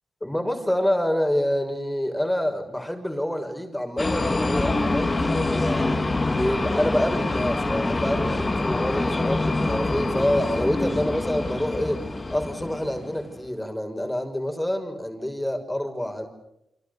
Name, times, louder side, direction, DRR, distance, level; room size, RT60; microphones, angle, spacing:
voice 1, 0.2-6.0 6.2-12.0 12.3-16.3, left 1 dB, 5° left, 5 dB, 6.1 m, -27 dB
sound 1, 4.0-13.3, left 2 dB, 25° left, 3.5 m, -25 dB
29.5 x 26.0 x 6.8 m, 0.81 s
cardioid pair, 80°, 0 cm